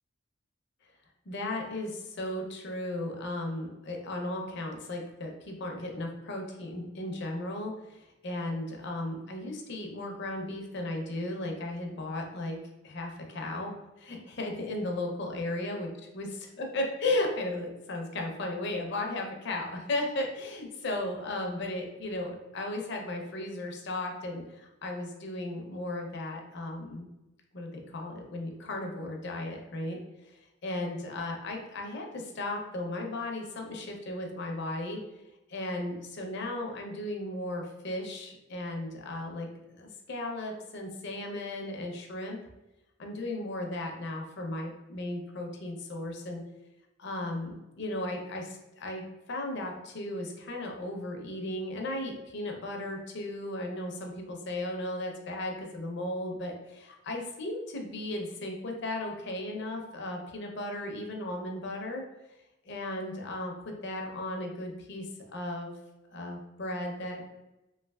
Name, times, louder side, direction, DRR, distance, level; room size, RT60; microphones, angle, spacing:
voice 1, 1.3-12.6 12.8-15.9 16.1-27.1 27.5-30.0 30.2-30.4 30.6-35.0 35.5-42.4 43.0-46.4 47.0-62.0 62.7-65.1 65.3-65.7 66.1-67.4, left 1 dB, 60° left, 2 dB, 0.6 m, -35 dB
3.1 x 2.9 x 2.2 m, 0.97 s
head